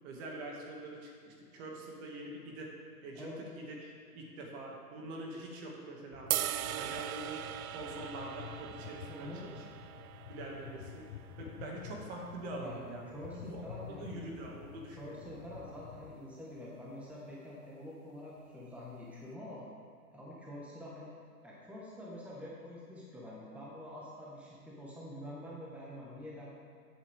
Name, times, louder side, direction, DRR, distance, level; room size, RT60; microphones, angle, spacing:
voice 1, 0.0-2.7 3.0-3.3 3.6-6.4 6.7-7.4 7.7-9.6 10.3-11.0 11.4-15.4, right 2 dB, 40° right, -1 dB, 2.4 m, -44 dB
sound 1, 6.1-16.1, left 9 dB, 55° left, 0.9 m, -50 dB
sound 2, 6.3-12.5, right 12 dB, 65° right, 0.6 m, -40 dB
voice 2, 9.1-9.4 12.6-12.8 13.1-14.3 14.9-19.6 20.1-21.1 21.4-26.5, left 1 dB, 5° right, -6 dB, 1.5 m, -46 dB
13.5 x 8.5 x 3.7 m, 2.3 s
hypercardioid pair, 125°, 47 cm